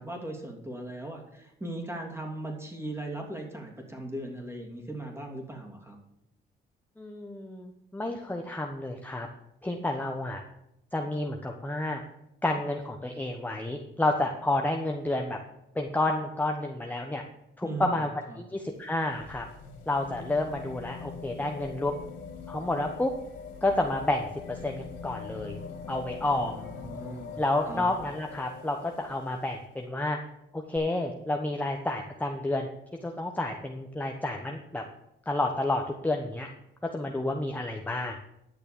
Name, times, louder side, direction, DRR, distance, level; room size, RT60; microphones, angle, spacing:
voice 1, 0.0-5.9 17.6-17.9 18.3-18.4 26.2-27.8, right 1 dB, 10° right, 2 dB, 2.9 m, -38 dB
voice 2, 7.0-9.3 9.6-10.4 10.9-12.0 12.4-15.4 15.7-17.2 17.6-18.1 18.4-19.4 19.9-21.9 22.5-23.1 23.6-25.6 25.9-26.6 27.4-30.2 30.5-32.7 33.0-34.8 35.3-36.5 36.9-38.2, left 2 dB, 10° left, 2 dB, 1.1 m, -30 dB
sound 1, 18.6-29.6 30.8-30.9, left 6 dB, 65° left, 2.8 m, -43 dB
11.0 x 6.7 x 6.9 m, 0.85 s
cardioid pair, 90°, 20 cm